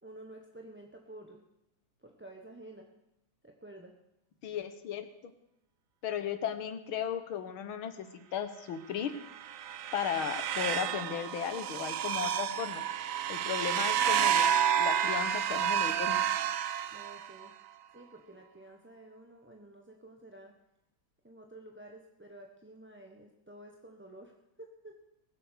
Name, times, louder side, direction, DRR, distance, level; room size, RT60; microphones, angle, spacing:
voice 1, 0.0-1.4 2.0-2.9 3.4-4.0 16.9-17.5 17.9-20.5 21.2-25.0, right 1 dB, 10° right, 1 dB, 0.9 m, -51 dB
voice 2, 4.4-5.1 6.0-8.1 8.3-9.2 9.9-12.8 13.3-14.5 14.8-16.2, left 8 dB, 80° left, 10 dB, 2.0 m, -35 dB
sound 1, 9.2-17.5, right 9 dB, 85° right, 0.7 m, -30 dB
21.5 x 7.9 x 6.5 m, 0.90 s
omnidirectional pair, 2.2 m